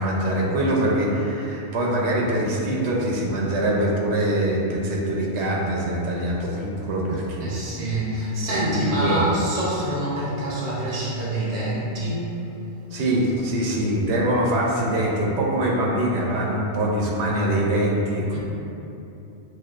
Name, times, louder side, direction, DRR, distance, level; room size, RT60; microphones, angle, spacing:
voice 1, 0.0-7.6 8.5-9.3 12.9-18.4, right 1 dB, 90° right, -3 dB, 0.9 m, -23 dB
voice 2, 7.4-12.4 18.3-18.4, right 1 dB, 45° right, -6 dB, 0.9 m, -26 dB
6.2 x 2.3 x 2.4 m, 2.8 s
omnidirectional pair, 1.1 m